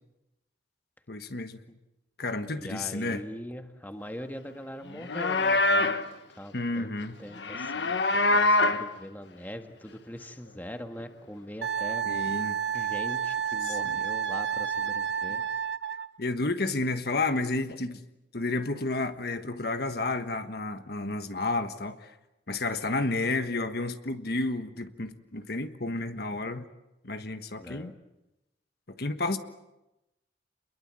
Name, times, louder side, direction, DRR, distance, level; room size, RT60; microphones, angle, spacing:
voice 1, 1.1-1.6 2.2-3.2 6.5-7.2 12.0-12.6 13.6-14.0 16.2-18.0 18.3-22.1 22.5-26.6 27.0-27.9 29.0-29.4, left 2 dB, 60° left, 1.4 m, -31 dB
voice 2, 2.5-6.0 6.4-6.9 7.2-12.1 12.7-15.4 27.6-28.0, equal, 10° left, 1.7 m, -42 dB
Livestock farm animals working animals, 4.9-6.1 7.4-8.9, left 2 dB, 85° left, 1.5 m, -24 dB
Wind instrument woodwind instrument, 11.6-16.1, right 7 dB, 80° right, 0.9 m, -30 dB
29.0 x 22.0 x 7.6 m
head